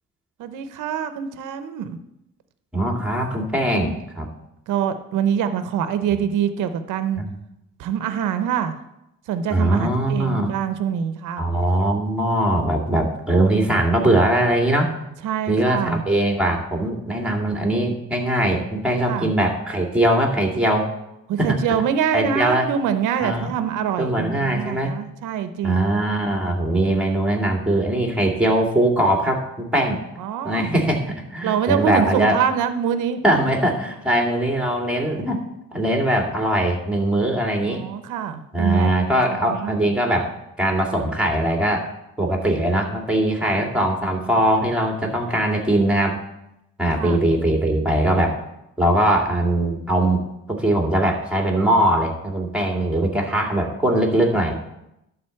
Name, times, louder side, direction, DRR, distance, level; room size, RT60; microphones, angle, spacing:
voice 1, 0.4-2.0 4.7-7.2 7.8-8.8 9.3-11.5 15.2-16.0 19.1-19.3 21.3-25.8 30.2-30.7 31.4-33.2 37.6-38.9 39.4-39.8 43.4-43.7 47.0-47.2, right 8 dB, 85° right, 10 dB, 0.8 m, -25 dB
voice 2, 2.7-4.3 7.1-7.3 9.5-10.5 11.4-14.9 15.5-20.9 21.4-21.6 22.1-22.7 23.2-23.5 24.0-25.0 25.6-30.0 30.4-32.4 33.2-35.4 35.7-37.8 38.5-40.3 40.6-41.9 42.2-46.2 46.8-48.4 48.8-50.2 50.5-54.5, right 1 dB, 5° right, 1 dB, 2.3 m, -21 dB
11.5 x 4.1 x 7.7 m, 0.85 s
cardioid pair, 90°, 30 cm